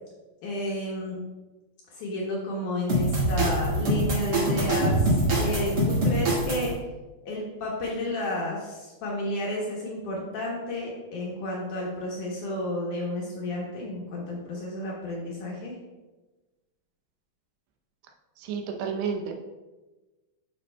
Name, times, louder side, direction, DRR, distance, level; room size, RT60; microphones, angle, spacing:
voice 1, 0.4-1.2 1.9-6.7 7.3-15.8, left 1 dB, 75° left, -3 dB, 1.8 m, -31 dB
sound 1, 2.9-6.7, right 1 dB, 55° right, 1.2 m, -24 dB
voice 2, 18.4-19.3, right 6 dB, 80° right, 3 dB, 2.8 m, -31 dB
11.5 x 5.4 x 2.2 m, 1.2 s
omnidirectional pair, 4.9 m